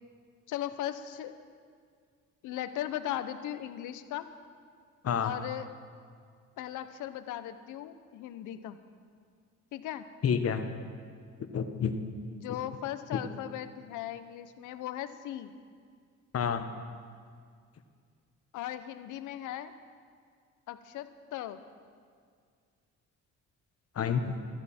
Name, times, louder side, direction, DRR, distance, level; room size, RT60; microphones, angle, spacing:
voice 1, 0.5-1.4 2.4-4.3 5.2-5.7 6.6-8.8 9.7-10.1 12.3-15.5 18.5-19.7 20.7-21.6, left 12 dB, 90° left, 11 dB, 0.8 m, -38 dB
voice 2, 10.2-10.7 11.5-11.9 13.1-13.2 16.3-16.7 23.9-24.4, left 7 dB, 50° left, 7 dB, 1.2 m, -29 dB
15.0 x 13.5 x 4.3 m, 2.1 s
cardioid pair, 90°, 30 cm